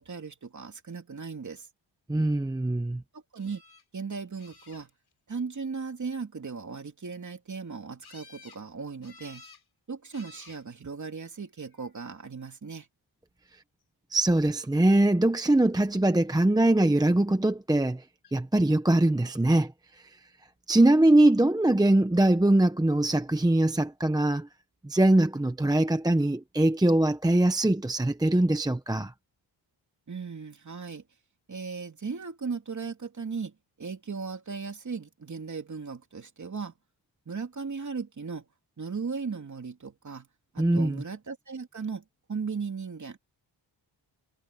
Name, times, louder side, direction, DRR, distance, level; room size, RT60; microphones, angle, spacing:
voice 1, 0.0-1.7 3.1-3.6 3.9-4.9 5.3-9.4 9.9-12.9 30.1-31.0 31.5-36.7 37.3-38.5 38.8-40.3 40.5-43.2, right 5 dB, 35° right, 3.0 m, -37 dB
voice 2, 2.1-3.0 14.1-18.0 18.3-19.7 20.7-24.5 24.8-29.1 40.6-41.0, right 1 dB, 10° right, 0.8 m, -22 dB
sound 1, 3.4-3.8 4.4-5.1 8.0-8.6 9.0-9.6 10.1-10.6 11.5-12.0 18.2-18.3 18.7-18.8, left 4 dB, 50° left, 6.2 m, -53 dB
wide cardioid pair, 135°, 50 cm